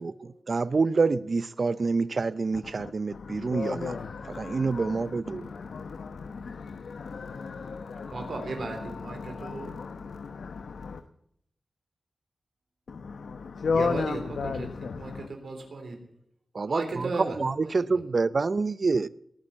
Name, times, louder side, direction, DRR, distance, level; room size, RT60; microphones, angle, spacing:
voice 1, 0.0-4.0 4.2-5.5 16.5-17.1 17.4-19.1, right 4 dB, 45° right, 0.5 m, -27 dB
voice 2, 2.8-8.3 9.2-11.0 12.9-15.2, left 5 dB, 85° left, 1.0 m, -34 dB
voice 3, 8.1-9.8 13.7-16.0 16.7-18.0, right 3 dB, 70° right, 3.4 m, -36 dB
19.0 x 9.8 x 7.1 m
wide cardioid pair, 135°, 0 cm